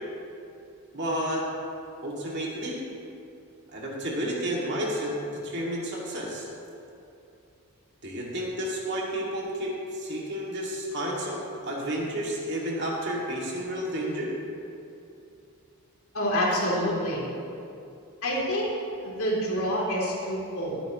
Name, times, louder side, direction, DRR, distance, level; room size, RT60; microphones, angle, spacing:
voice 1, 0.9-1.5 2.0-2.8 3.7-6.5 8.0-14.3, equal, 50° right, -3 dB, 2.3 m, -31 dB
voice 2, 16.1-17.2 18.2-18.7 19.0-20.8, equal, 75° left, -4 dB, 3.2 m, -27 dB
21.0 x 9.0 x 3.1 m, 2.7 s
head